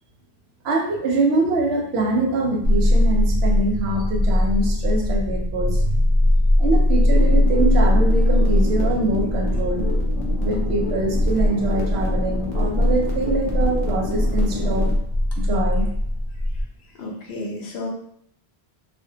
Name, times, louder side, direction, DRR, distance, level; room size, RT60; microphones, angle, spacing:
voice 1, 0.6-6.3 6.6-9.8 10.4-14.9 15.4-15.9, right 2 dB, 85° right, 1 dB, 0.9 m, -24 dB
sound 1, 2.6-16.6, left 1 dB, 55° right, 0.6 m, -20 dB
sound 2, 7.1-15.0, left 2 dB, 50° left, 0.6 m, -32 dB
voice 2, 17.0-17.9, left 2 dB, 80° left, 0 dB, 0.9 m, -31 dB
2.3 x 2.1 x 2.6 m, 0.69 s
omnidirectional pair, 1.0 m